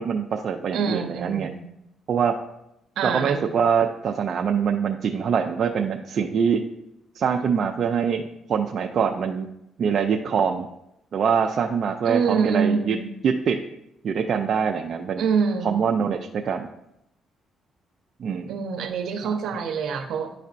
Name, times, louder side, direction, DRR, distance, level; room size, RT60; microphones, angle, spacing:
voice 1, 0.0-1.5 2.1-2.4 3.0-6.6 7.2-9.5 9.8-10.7 11.1-13.0 13.2-13.6 14.0-15.2 15.6-16.7 18.2-18.5 19.2-19.3, right 7 dB, 60° right, 3 dB, 0.4 m, -24 dB
voice 2, 0.7-1.6 3.0-3.4 12.1-13.1 15.2-15.8 18.5-20.3, right 6 dB, 75° right, 5 dB, 0.8 m, -25 dB
10.5 x 4.2 x 2.5 m, 0.83 s
cardioid pair, 90°, 0 cm